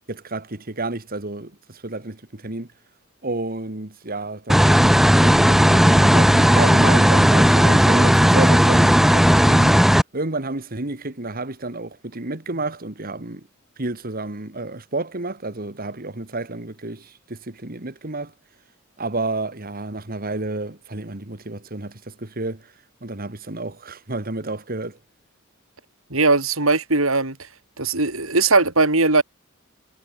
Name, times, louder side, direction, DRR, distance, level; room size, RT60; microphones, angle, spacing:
voice 1, 0.1-2.7 3.2-9.8 10.1-13.5 13.8-18.3 19.0-22.6 23.0-25.0, right 2 dB, 45° right, 2.1 m, -30 dB
sound 1, 4.5-10.0, equal, ahead, 1.6 m, -15 dB
voice 2, 26.1-27.5 27.8-29.2, right 3 dB, 80° right, 5.1 m, -19 dB
head